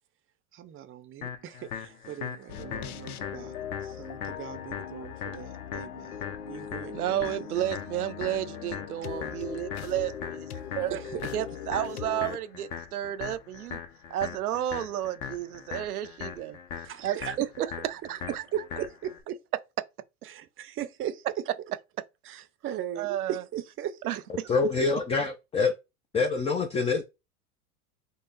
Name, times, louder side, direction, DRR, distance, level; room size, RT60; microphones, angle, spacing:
voice 1, 0.5-7.5 10.9-11.3 16.8-17.5 18.5-19.4 20.2-21.4 22.2-24.0, right 10 dB, 30° right, 0.7 m, -38 dB
sound 1, 1.2-19.2, left 8 dB, 45° left, 1.2 m, -40 dB
sound 2, 2.5-12.4, left 9 dB, 85° left, 0.6 m, -40 dB
voice 2, 6.9-10.5 10.8-11.0 11.3-13.8 14.1-16.6 17.0-17.5 17.8-18.2 22.4-22.5 23.0-23.4 24.1-24.5, right 12 dB, 90° right, 0.7 m, -32 dB
voice 3, 24.5-25.7 26.1-27.0, left 4 dB, 15° left, 0.5 m, -25 dB
5.3 x 2.0 x 3.9 m
hypercardioid pair, 100°, 43 cm